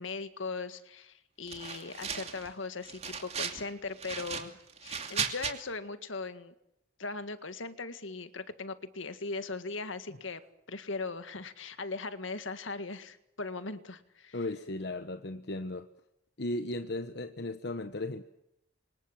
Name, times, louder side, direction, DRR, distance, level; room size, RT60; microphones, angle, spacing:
voice 1, 0.0-6.5 7.0-10.4 10.7-14.4, left 3 dB, 85° left, 11 dB, 1.9 m, -39 dB
sound 1, 1.5-2.5 2.8-3.6 4.0-5.5, right 6 dB, 35° right, 2.7 m, -36 dB
voice 2, 14.3-15.9 16.4-18.2, left 2 dB, 55° left, 10 dB, 1.1 m, -36 dB
29.5 x 25.5 x 7.4 m, 0.82 s
head